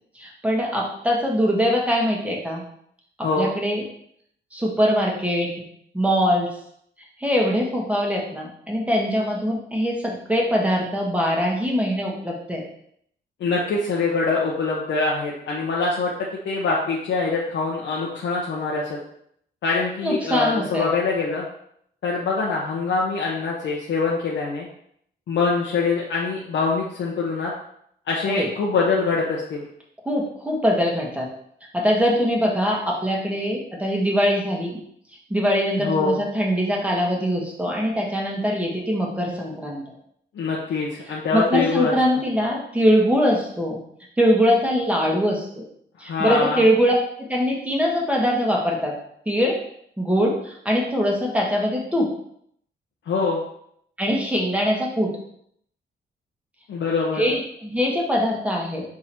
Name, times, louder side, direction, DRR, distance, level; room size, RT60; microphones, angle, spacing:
voice 1, 0.1-2.6 3.4-3.8 4.5-5.5 5.9-6.5 7.2-12.6 20.0-20.9 28.3-28.5 30.0-31.3 31.7-34.8 35.3-39.8 41.1-43.8 44.2-45.6 46.0-48.9 49.2-49.6 50.0-52.1 54.0-55.1 57.1-58.8, equal, 5° right, -2 dB, 1.4 m, -22 dB
voice 2, 13.4-16.1 16.4-19.0 19.6-21.4 22.0-24.7 25.3-27.5 28.1-29.7 35.8-36.2 40.3-41.9 46.0-46.6 53.0-53.4 56.7-57.2, left 4 dB, 90° left, -4 dB, 1.1 m, -24 dB
5.9 x 3.8 x 4.4 m, 0.68 s
wide cardioid pair, 140°, 18 cm